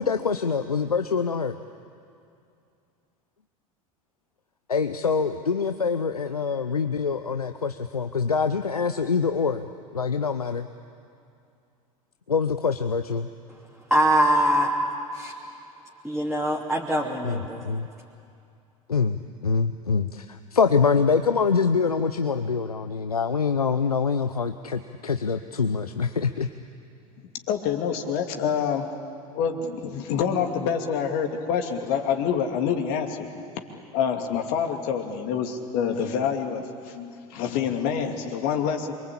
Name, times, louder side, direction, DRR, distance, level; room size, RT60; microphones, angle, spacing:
voice 1, 0.0-1.6 4.7-9.7 9.9-10.7 12.3-13.3 17.2-17.9 18.9-26.5, left 5 dB, 85° left, 9 dB, 0.8 m, -25 dB
voice 2, 13.9-14.7 15.1-15.3 16.0-17.6, equal, ahead, -5 dB, 3.0 m, -22 dB
voice 3, 27.5-28.9 29.3-33.5 33.9-38.9, left 7 dB, 50° left, 4 dB, 2.8 m, -27 dB
27.5 x 23.5 x 8.7 m, 2.5 s
figure-of-eight pair, 80°, 19 cm